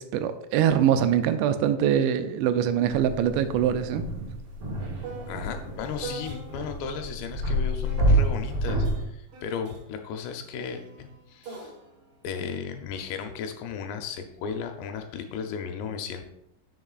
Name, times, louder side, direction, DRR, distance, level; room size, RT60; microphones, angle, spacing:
voice 1, 0.0-4.0, right 9 dB, 85° right, 10 dB, 2.7 m, -23 dB
sound 1, 1.7-1.8 2.1-6.9 7.8-13.4 14.2-14.6, right 4 dB, 65° right, 1.3 m, -45 dB
sound 2, 2.9-9.0, right 1 dB, 50° right, 1.8 m, -28 dB
voice 2, 5.3-11.7 12.2-16.3, left 6 dB, 80° left, 5 dB, 2.8 m, -35 dB
10.5 x 6.6 x 2.4 m, 0.77 s
omnidirectional pair, 5.0 m